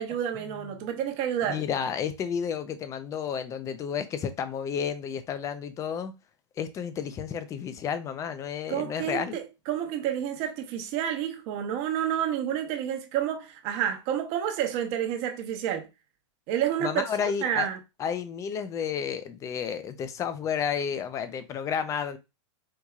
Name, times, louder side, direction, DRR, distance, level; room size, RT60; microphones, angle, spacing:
voice 1, 0.0-1.6 8.7-15.9 16.5-17.8, right 10 dB, 40° right, 0.9 m, -29 dB
voice 2, 1.5-6.1 6.6-9.4 16.8-17.7 18.0-22.2, left 7 dB, 20° left, 0.5 m, -31 dB
4.6 x 2.7 x 2.3 m
hypercardioid pair, 140°, 16 cm